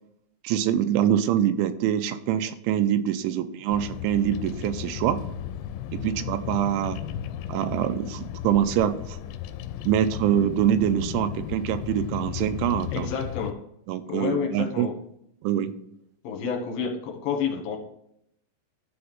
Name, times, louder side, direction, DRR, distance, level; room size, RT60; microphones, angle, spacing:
voice 1, 0.4-5.2 5.9-7.0 7.5-9.2 9.9-13.1 13.9-14.9 15.4-15.7, right 10 dB, 90° right, 11 dB, 3.1 m, -24 dB
Bird vocalization bird call bird song, 3.7-13.5, left 11 dB, 80° left, 2.7 m, -35 dB
voice 2, 12.9-13.6 14.1-14.9 16.2-17.8, left 6 dB, 65° left, 2 dB, 2.7 m, -29 dB
12.5 x 4.4 x 5.5 m, 0.74 s
omnidirectional pair, 5.4 m